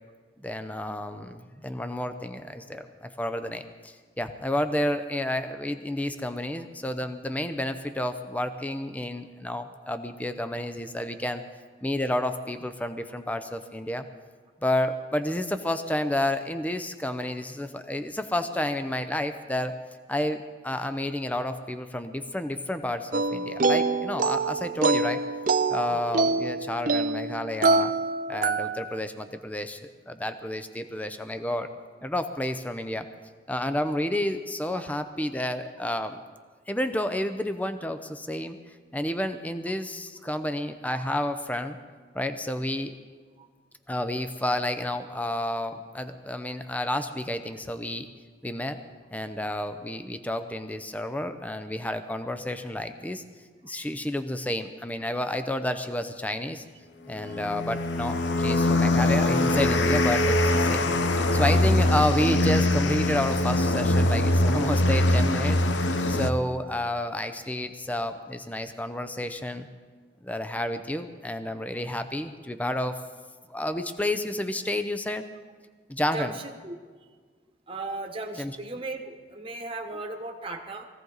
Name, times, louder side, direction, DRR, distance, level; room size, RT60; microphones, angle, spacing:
voice 1, 0.4-11.4 11.8-14.1 14.6-19.8 20.1-25.2 25.7-27.9 28.3-29.8 30.1-31.7 32.0-33.1 33.5-36.2 36.7-38.6 38.9-41.8 42.1-42.9 43.9-48.1 48.4-48.8 49.1-53.2 53.6-56.6 57.1-60.9 61.3-65.6 66.1-69.7 70.2-73.0 73.5-75.2 75.9-76.4 78.4-78.6, left 1 dB, 10° left, 9 dB, 0.6 m, -30 dB
sound 1, 23.1-29.0, right 3 dB, 45° right, 0.6 m, -25 dB
sound 2, 57.2-66.3, left 1 dB, 75° left, 0.8 m, -23 dB
voice 2, 76.1-76.7 77.7-80.8, right 2 dB, 30° right, 2 dB, 1.2 m, -37 dB
21.0 x 16.0 x 4.0 m, 1.5 s
head